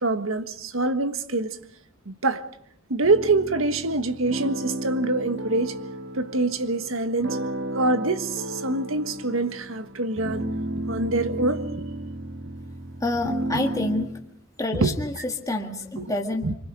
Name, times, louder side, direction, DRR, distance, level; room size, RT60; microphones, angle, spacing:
voice 1, 0.0-1.6 2.0-2.4 2.9-5.8 6.1-7.4 7.7-10.5 10.9-11.6 14.8-15.0 16.0-16.1 16.4-16.5, right 2 dB, 85° right, 1.6 m, -25 dB
sound 1, 3.0-14.1, right 1 dB, 60° right, 1.7 m, -33 dB
voice 2, 13.0-14.1 14.6-16.4, left 2 dB, 15° left, 1.9 m, -27 dB
27.5 x 25.0 x 5.2 m
head